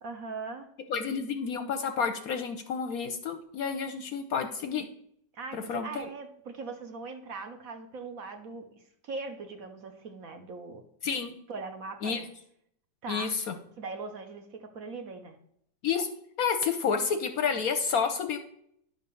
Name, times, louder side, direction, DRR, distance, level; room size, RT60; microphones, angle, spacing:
voice 1, 0.0-1.2 5.3-8.6 9.0-10.8 11.5-12.3 13.0-13.3 13.8-15.4, right 4 dB, 55° right, 5 dB, 1.2 m, -40 dB
voice 2, 0.9-4.8 5.5-6.1 11.0-11.3 12.0-12.2 13.1-13.5 15.8-16.1 16.4-18.4, left 6 dB, 65° left, 8 dB, 1.0 m, -30 dB
10.5 x 3.7 x 6.8 m, 0.70 s
omnidirectional pair, 1.9 m